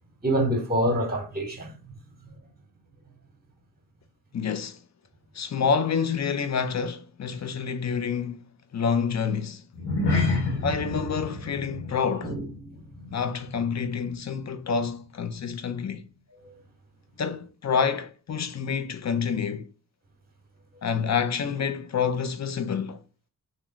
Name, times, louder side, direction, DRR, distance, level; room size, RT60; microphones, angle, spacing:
voice 1, 0.2-1.7 12.2-12.7 16.4-16.5, right 1 dB, 25° right, 1.0 m, -26 dB
voice 2, 4.3-4.8 5.3-8.5 8.7-9.6 10.6-12.3 13.1-16.0 17.2-19.7 20.8-23.0, left 6 dB, 45° left, 0.5 m, -28 dB
sound 1, 9.7-14.4 14.6-14.9 15.4-15.5, left 3 dB, 85° left, 0.9 m, -30 dB
2.9 x 2.1 x 3.8 m
cardioid pair, 50°, 40 cm